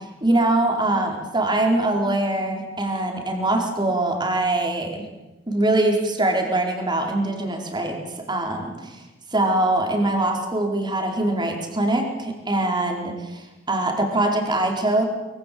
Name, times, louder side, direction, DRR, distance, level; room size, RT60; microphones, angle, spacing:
voice 1, 0.2-5.0 5.5-8.0 8.3-9.0 9.3-15.0, right 2 dB, 20° right, 2 dB, 4.7 m, -23 dB
24.5 x 24.0 x 8.7 m, 1.0 s
head